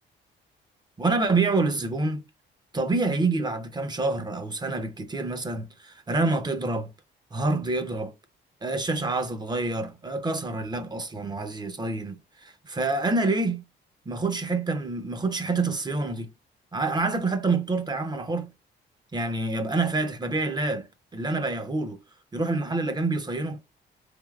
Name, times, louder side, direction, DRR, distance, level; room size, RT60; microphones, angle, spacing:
voice 1, 1.0-2.2 2.7-6.9 7.3-8.1 8.6-12.2 12.6-13.6 14.1-16.3 16.7-18.5 19.1-20.9 21.1-22.0 22.3-23.6, right 3 dB, 20° right, 0.7 m, -27 dB
3.5 x 2.7 x 2.3 m
cardioid pair, 90°, 20 cm